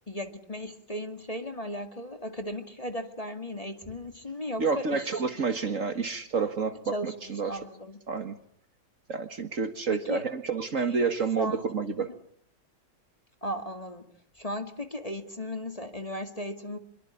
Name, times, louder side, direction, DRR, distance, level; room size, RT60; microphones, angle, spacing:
voice 1, 0.1-5.2 6.9-7.1 7.5-8.0 9.9-10.2 10.8-11.0 11.4-11.7 12.0-12.2 13.4-14.1 14.4-16.8, equal, 20° left, 7 dB, 2.1 m, -36 dB
voice 2, 4.6-7.6 8.1-8.4 9.1-12.1, right 5 dB, 45° right, 9 dB, 1.9 m, -29 dB
26.5 x 22.5 x 9.8 m, 0.68 s
omnidirectional pair, 1.9 m